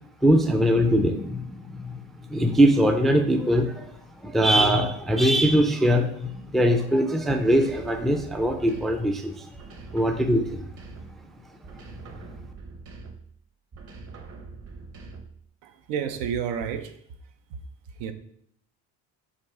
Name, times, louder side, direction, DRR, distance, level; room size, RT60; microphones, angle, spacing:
voice 1, 0.2-2.0 2.3-9.5 9.9-10.6, equal, ahead, 0.3 m, -22 dB
sound 1, 7.5-9.2 9.5-11.3 11.6-13.3 13.7-15.4, right 4 dB, 35° right, 0.9 m, -43 dB
voice 2, 15.6-16.9 18.0-18.1, right 8 dB, 85° right, 0.8 m, -30 dB
7.4 x 2.7 x 4.8 m
cardioid pair, 125°, 41 cm